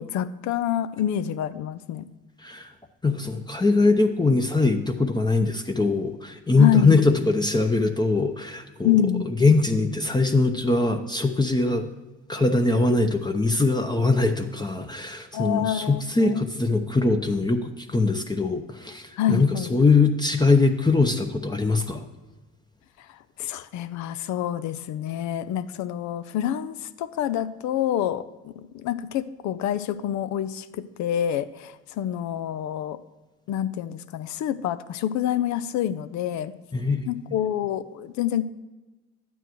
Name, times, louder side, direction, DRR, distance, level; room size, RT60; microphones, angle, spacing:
voice 1, 0.0-2.1 6.6-7.0 8.8-9.3 15.3-16.5 19.2-19.8 23.4-33.0 33.5-36.5 37.1-38.5, left 10 dB, 75° left, 14 dB, 0.6 m, -27 dB
voice 2, 2.4-2.7 3.0-9.0 9.4-11.9 12.3-22.1 36.7-37.2, left 3 dB, 15° left, 4 dB, 0.8 m, -22 dB
11.5 x 9.0 x 3.1 m, 1.1 s
supercardioid pair, 80°, 29 cm